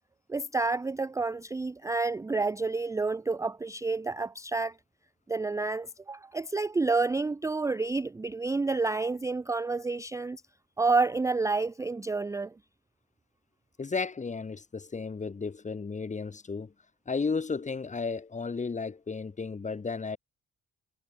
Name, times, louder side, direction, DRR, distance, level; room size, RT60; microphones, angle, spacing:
voice 1, 0.3-4.7 5.3-10.4 10.8-12.5, right 3 dB, 10° right, 0.4 m, -29 dB
voice 2, 13.8-16.7 17.1-20.2, left 4 dB, 25° left, 1.2 m, -33 dB
cardioid pair, 90°, 30 cm